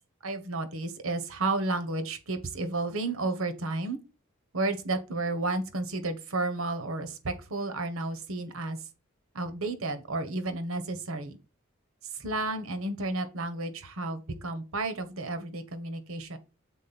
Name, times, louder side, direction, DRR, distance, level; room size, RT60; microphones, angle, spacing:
voice 1, 0.2-4.0 4.5-8.8 9.3-11.4 12.1-16.4, right 2 dB, 80° right, 1.1 m, -32 dB
7.4 x 4.1 x 4.2 m
head